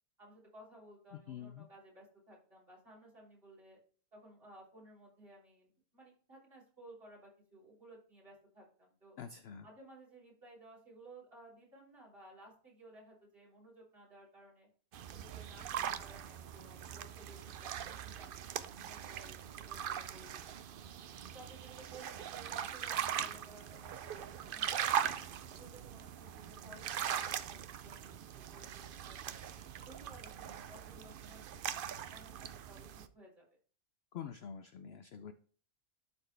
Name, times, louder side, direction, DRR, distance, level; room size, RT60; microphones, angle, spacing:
voice 1, 0.2-3.8 4.1-9.2 9.6-14.7 15.1-18.5 18.7-20.6 21.2-25.2 25.5-29.3 29.8-33.5, right 1 dB, 40° right, -6 dB, 3.6 m, -57 dB
voice 2, 1.1-1.7 9.2-9.7 34.1-35.3, left 8 dB, 65° left, 10 dB, 0.6 m, -46 dB
sound 1, 14.9-33.1, right 9 dB, 85° right, 0.4 m, -41 dB
12.0 x 4.3 x 3.3 m, 0.44 s
omnidirectional pair, 1.5 m